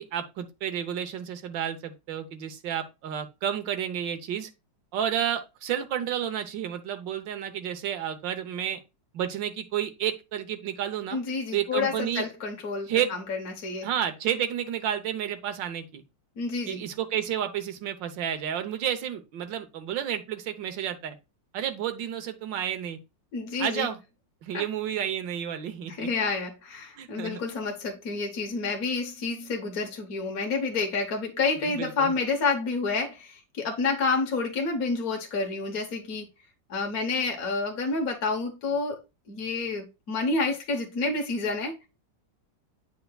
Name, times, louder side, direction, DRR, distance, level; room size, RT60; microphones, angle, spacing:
voice 1, 0.0-4.5 4.9-8.8 9.1-11.2 11.5-12.3 12.9-13.2 13.8-16.0 16.7-21.1 21.5-23.0 23.6-24.0 24.4-26.1 27.0-27.4 31.7-32.1, right 9 dB, 80° right, 1.6 m, -31 dB
voice 2, 11.1-13.9 16.4-16.8 23.3-23.9 24.5-24.6 25.9-36.3 36.7-39.0 39.3-41.8, left 4 dB, 55° left, 1.5 m, -29 dB
9.1 x 5.7 x 2.3 m
omnidirectional pair, 2.0 m